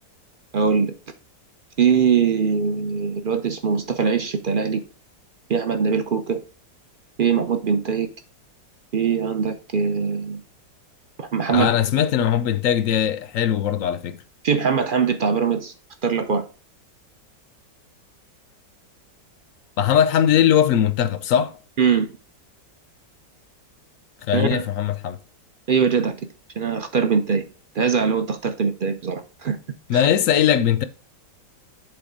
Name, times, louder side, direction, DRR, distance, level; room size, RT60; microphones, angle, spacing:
voice 1, 0.5-0.9 1.8-4.8 5.5-6.4 7.2-8.1 8.9-10.4 11.2-11.7 14.4-15.7 16.0-16.4 21.8-22.1 24.3-24.6 25.7-26.2 26.6-27.5 27.7-29.6 29.9-30.1, right 6 dB, 60° right, 0.5 m, -22 dB
voice 2, 11.5-14.2 19.8-21.6 24.3-25.2 29.9-30.8, left 9 dB, 65° left, 0.8 m, -20 dB
7.9 x 4.0 x 5.1 m
omnidirectional pair, 1.9 m